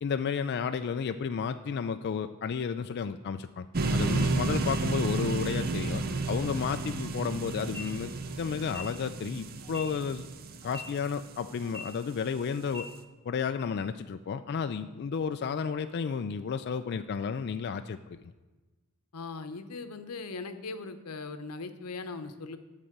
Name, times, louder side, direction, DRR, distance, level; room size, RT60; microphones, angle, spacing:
voice 1, 0.0-3.7 3.9-10.3 10.6-12.9 13.2-18.2, left 6 dB, 50° left, 9 dB, 0.3 m, -32 dB
sound 1, 3.7-11.8, right 3 dB, 45° right, 0.6 m, -32 dB
sound 2, 7.7-7.8 8.6-8.8 9.6-9.8 10.6-10.8 11.6-11.8 12.6-12.8, left 3 dB, 65° right, 1.9 m, -41 dB
voice 2, 19.1-22.6, left 3 dB, 90° left, 10 dB, 0.8 m, -39 dB
11.0 x 4.1 x 7.9 m, 1.2 s
head